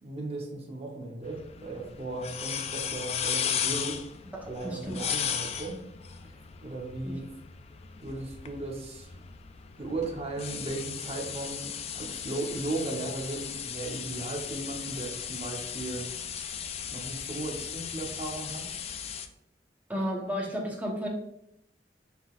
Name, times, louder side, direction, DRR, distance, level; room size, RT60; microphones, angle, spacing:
voice 1, 0.0-4.0 4.5-5.8 6.2-6.3 6.6-7.2 8.0-9.1 9.8-16.1 16.8-18.7, right 2 dB, 35° right, 1 dB, 0.9 m, -36 dB
sound 1, 1.2-19.3, left 8 dB, 35° left, 0.3 m, -36 dB
voice 2, 4.6-5.0 7.0-7.1 19.9-21.1, equal, 10° right, -2 dB, 1.0 m, -32 dB
5.5 x 3.9 x 2.4 m, 0.77 s
head